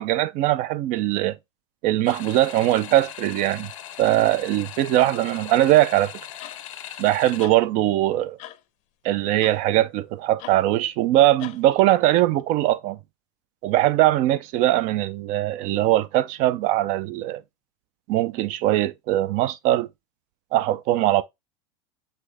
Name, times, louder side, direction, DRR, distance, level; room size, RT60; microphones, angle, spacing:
voice 1, 0.0-1.4 1.8-3.7 4.0-6.1 7.0-8.4 9.0-13.0 13.6-17.4 18.1-19.9 20.5-21.2, right 14 dB, 50° right, 0.5 m, -21 dB
sound 1, 2.0-7.5, left 11 dB, 85° left, 0.8 m, -39 dB
sound 2, 6.4-6.6 7.4-7.6 8.4-8.6 9.4-9.6 10.4-10.6 11.4-11.6 12.4-12.5, left 14 dB, 50° left, 0.6 m, -41 dB
5.8 x 2.6 x 3.3 m
supercardioid pair, 115°, 16 cm